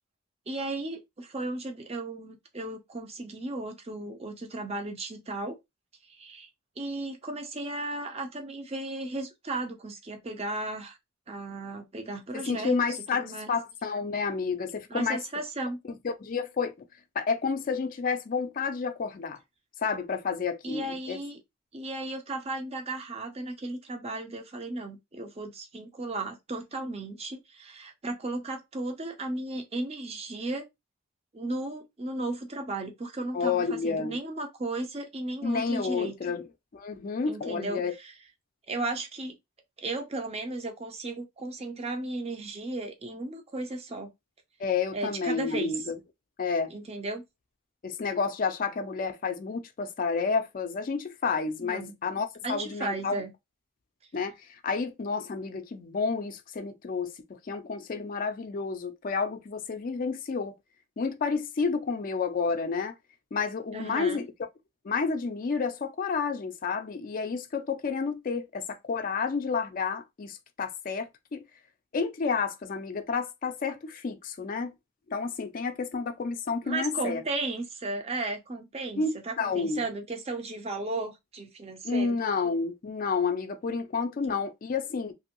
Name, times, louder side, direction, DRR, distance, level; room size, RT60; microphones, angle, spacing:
voice 1, 0.5-5.6 6.1-6.5 6.8-11.0 11.3-13.5 14.9-15.8 20.6-21.4 21.7-30.6 31.3-36.1 37.3-37.8 38.7-39.3 39.8-44.1 44.9-45.9 46.7-47.2 51.6-52.0 52.4-53.3 63.7-64.3 76.6-82.2 84.2-84.4, right 2 dB, 30° right, 0.6 m, -35 dB
voice 2, 12.3-15.2 15.9-16.7 17.2-19.4 19.8-21.2 33.3-34.2 35.4-36.5 36.7-37.9 44.6-46.0 46.4-46.7 47.8-53.2 54.1-60.6 61.0-62.9 63.3-64.3 64.8-71.4 71.9-74.7 75.1-77.2 79.0-79.8 81.8-85.1, left 5 dB, 40° left, 0.4 m, -30 dB
2.9 x 2.6 x 2.9 m
head